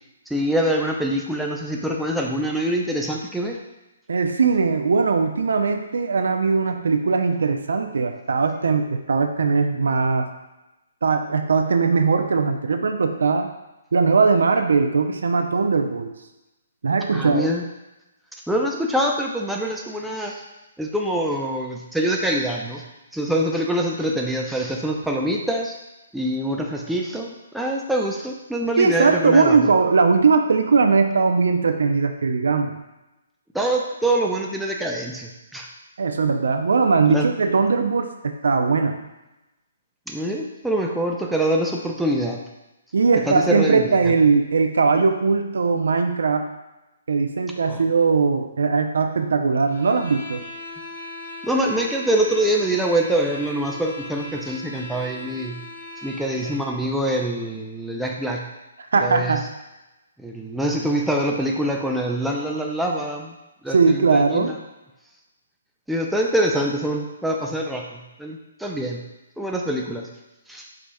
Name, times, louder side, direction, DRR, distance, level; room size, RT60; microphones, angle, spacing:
voice 1, 0.3-3.6 17.1-17.7 18.5-20.4 20.8-22.8 23.1-25.7 26.1-29.6 33.5-35.7 37.0-37.3 40.1-42.4 43.3-44.1 47.7-47.8 51.4-55.6 56.0-58.4 59.0-59.4 60.2-63.3 63.6-64.5 65.9-69.0 69.4-70.1 70.5-70.6, right 1 dB, ahead, -1 dB, 0.4 m, -25 dB
voice 2, 4.1-10.3 11.0-13.5 13.9-16.1 16.8-17.5 28.8-32.7 36.0-39.0 42.9-46.5 47.1-50.4 58.9-59.4 63.7-64.5, right 4 dB, 70° right, 6 dB, 0.4 m, -20 dB
sound 1, 49.7-56.7, left 2 dB, 65° left, 0.8 m, -38 dB
4.9 x 4.0 x 2.2 m, 0.99 s
figure-of-eight pair, 135°, 0 cm